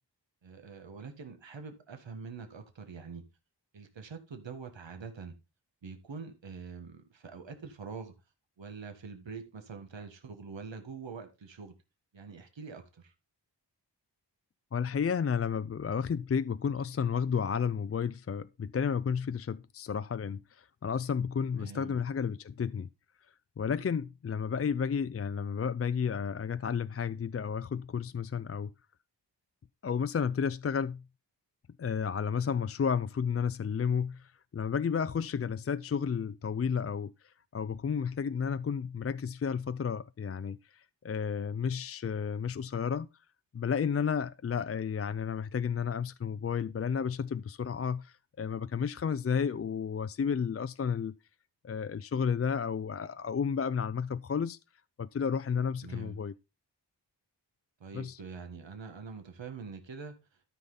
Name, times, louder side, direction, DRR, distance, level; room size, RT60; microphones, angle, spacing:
voice 1, 0.4-3.2 3.7-5.3 5.8-8.1 8.6-11.7 12.1-13.1 21.6-22.0 55.8-56.2 57.8-60.1, right 5 dB, 80° right, 1.5 m, -44 dB
voice 2, 14.7-22.9 23.6-28.7 29.8-31.0 31.8-43.1 43.5-51.2 51.6-54.6 55.0-56.3 57.9-58.2, left 6 dB, 35° left, 0.4 m, -32 dB
13.0 x 5.7 x 3.9 m
wide cardioid pair, 80°, 44 cm